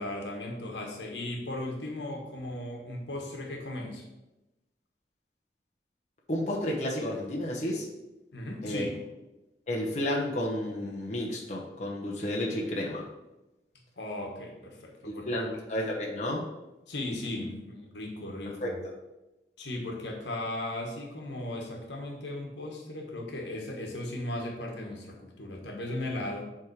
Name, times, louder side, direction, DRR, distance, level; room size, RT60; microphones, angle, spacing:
voice 1, 0.0-4.0 8.3-9.0 14.0-15.5 16.9-18.8 19.6-26.5, left 1 dB, 80° left, 1 dB, 1.4 m, -37 dB
voice 2, 6.3-7.9 8.6-8.9 9.7-13.0 15.0-16.5 18.6-18.7, left 1 dB, 40° left, -3 dB, 1.0 m, -31 dB
7.7 x 3.7 x 4.8 m, 0.98 s
head